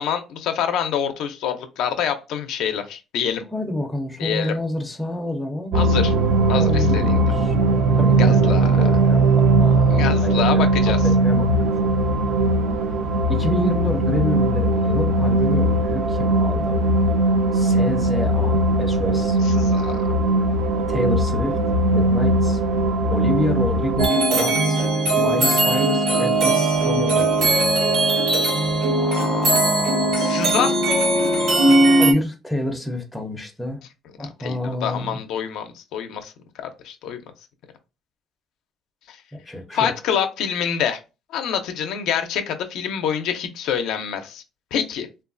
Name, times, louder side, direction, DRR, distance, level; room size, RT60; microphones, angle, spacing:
voice 1, 0.0-3.4 4.2-4.5 5.7-6.1 6.5-7.2 8.2-8.9 9.9-11.0 19.5-20.1 28.9-30.8 34.2-36.3 36.6-37.2 39.1-39.2 39.7-41.0 41.3-44.4 44.7-45.1, left 8 dB, 80° left, 0.4 m, -26 dB
voice 2, 3.5-5.9 6.6-7.5 7.9-10.9 11.2-11.7 13.3-16.8 17.5-19.4 20.9-21.6 21.9-22.6 23.1-24.8 25.2-27.6 32.0-33.8 34.2-35.2 39.3-39.9, left 1 dB, 5° left, 0.5 m, -28 dB
sound 1, 5.7-24.1, right 2 dB, 65° right, 0.4 m, -19 dB
sound 2, 24.0-32.1, right 2 dB, 90° right, 1.0 m, -19 dB
3.0 x 2.3 x 2.4 m
cardioid pair, 150°, 0 cm